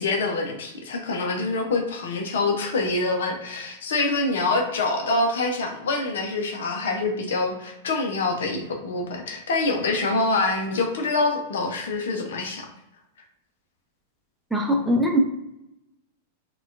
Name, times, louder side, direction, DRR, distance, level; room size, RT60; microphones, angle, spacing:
voice 1, 0.0-12.7, left 3 dB, 65° left, 3 dB, 0.6 m, -25 dB
voice 2, 14.5-15.2, equal, 5° right, 0 dB, 0.6 m, -21 dB
4.2 x 2.3 x 2.5 m, 0.87 s
figure-of-eight pair, 95°, 0 cm